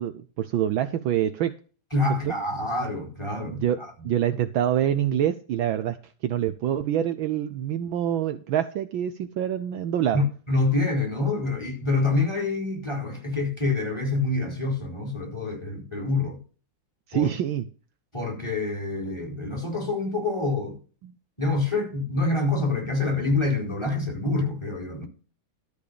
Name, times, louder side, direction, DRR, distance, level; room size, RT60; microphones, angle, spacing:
voice 1, 0.0-1.5 2.1-2.3 3.5-3.8 4.0-6.0 6.2-10.2 17.1-17.7 21.0-21.1, right 10 dB, 70° right, 1.4 m, -26 dB
voice 2, 1.9-3.9 10.1-16.4 17.1-17.3 18.1-20.8 21.4-25.1, left 3 dB, 10° left, 4.2 m, -26 dB
13.0 x 5.1 x 6.7 m
omnidirectional pair, 2.4 m